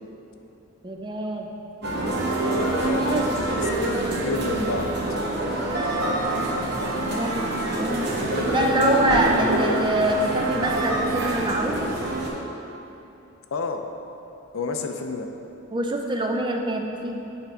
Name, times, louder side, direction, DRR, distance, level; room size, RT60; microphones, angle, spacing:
voice 1, 0.8-1.5 3.1-3.4 7.1-8.1 8.5-11.9 15.7-17.2, right 1 dB, 20° right, 2 dB, 0.4 m, -25 dB
sound 1, 1.8-12.3, right 1 dB, 50° right, 0.9 m, -25 dB
voice 2, 2.7-3.1 3.5-3.6 4.2-4.9 8.2-9.8 13.5-13.8 14.5-15.3, left 3 dB, 70° left, 5 dB, 0.5 m, -30 dB
8.2 x 3.4 x 5.0 m, 2.9 s
head